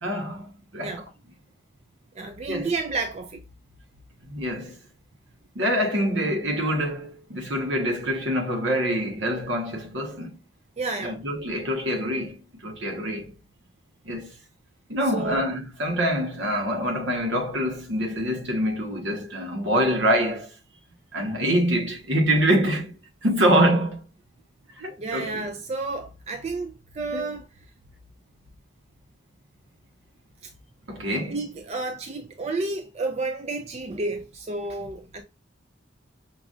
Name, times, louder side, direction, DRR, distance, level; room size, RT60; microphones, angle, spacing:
voice 1, 0.0-1.0 2.5-2.7 4.2-4.8 5.5-10.4 11.0-13.3 14.0-14.3 14.9-20.5 21.1-24.0 24.8-25.3 27.1-27.3 30.9-31.4, equal, 70° right, 1.2 m, -25 dB
voice 2, 2.1-3.4 10.8-11.2 15.1-15.5 25.0-27.5 30.4-30.5 31.2-35.2, right 3 dB, 35° right, 0.4 m, -31 dB
5.9 x 2.4 x 2.5 m
head